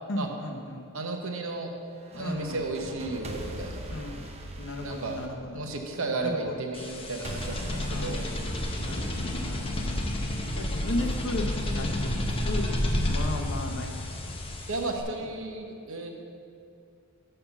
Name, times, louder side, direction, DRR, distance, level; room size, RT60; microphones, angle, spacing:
voice 1, 0.1-0.8 2.1-2.6 3.9-4.3 4.6-5.7 6.2-6.6 7.9-8.2 8.7-10.1 10.5-11.5 11.8-12.1 12.4-13.9 14.2-14.3, left 1 dB, 60° left, 3 dB, 0.9 m, -35 dB
voice 2, 0.9-1.7 2.1-3.8 4.8-5.2 5.5-8.2 14.7-16.1, right 2 dB, 70° right, 3 dB, 1.0 m, -33 dB
sound 1, 2.0-6.1 7.2-10.1, right 1 dB, 30° right, 0.7 m, -41 dB
sound 2, 6.7-15.0, left 1 dB, 25° left, 0.7 m, -30 dB
6.7 x 5.6 x 6.9 m, 2.4 s
head